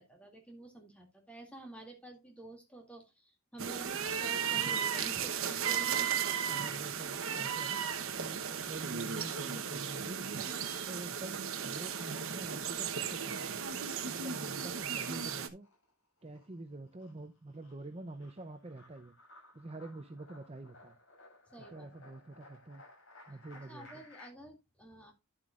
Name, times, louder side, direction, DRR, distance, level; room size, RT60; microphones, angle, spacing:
voice 1, 0.0-6.2 10.0-11.0 21.5-21.9 23.5-25.1, right 2 dB, 5° left, 2 dB, 2.4 m, -50 dB
sound 1, 3.6-15.5, right 8 dB, 65° right, 1.0 m, -35 dB
voice 2, 6.5-7.8 8.1-10.3 10.9-13.6 14.0-15.7 16.2-19.1 19.5-21.0 21.6-22.8 23.3-24.0, right 2 dB, 25° right, 7 dB, 0.6 m, -47 dB
sound 2, 15.5-24.3, left 2 dB, 55° left, 6.6 m, -58 dB
11.5 x 7.7 x 2.4 m, 0.21 s
head